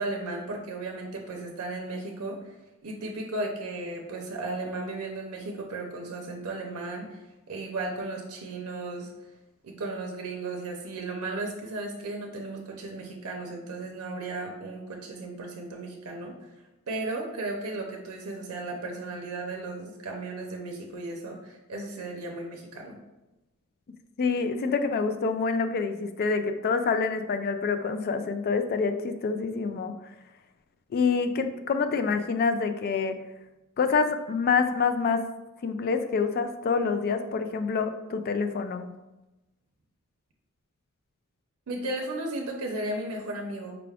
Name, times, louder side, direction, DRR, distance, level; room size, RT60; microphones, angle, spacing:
voice 1, 0.0-2.5 2.8-7.2 7.5-9.1 9.6-16.5 16.9-23.0 41.7-43.8, right 2 dB, 75° right, 1 dB, 0.6 m, -35 dB
voice 2, 24.2-29.9 30.9-33.2 33.8-35.2 35.6-38.9, left 5 dB, 45° left, 9 dB, 0.3 m, -26 dB
4.8 x 2.3 x 3.4 m, 1.0 s
head